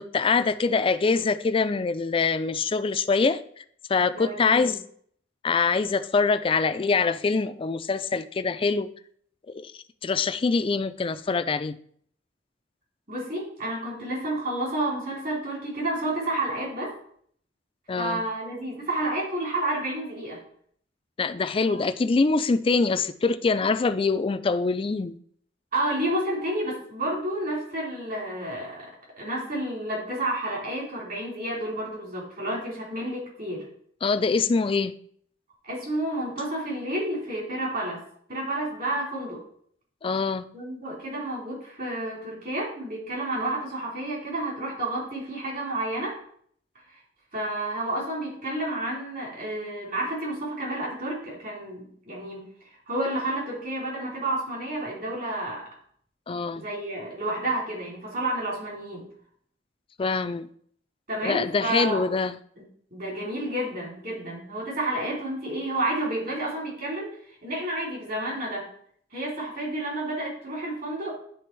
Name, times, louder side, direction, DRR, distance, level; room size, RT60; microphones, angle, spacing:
voice 1, 0.0-3.4 3.9-4.8 5.4-8.9 9.5-9.7 10.0-11.8 17.9-18.2 21.2-25.2 34.0-34.9 40.0-40.4 56.3-56.6 60.0-60.5 61.2-62.3, left 4 dB, 30° left, 0.4 m, -24 dB
voice 2, 4.1-4.7 13.1-16.9 18.0-20.4 21.6-21.8 25.7-28.9 29.2-33.6 35.6-38.0 38.3-39.4 40.5-46.1 47.3-52.5 52.9-55.7 56.5-59.1 61.1-62.0 62.6-62.7 62.9-67.1 67.4-68.7 69.1-71.2, right 1 dB, 50° right, 3.3 m, -30 dB
10.0 x 3.4 x 4.5 m
head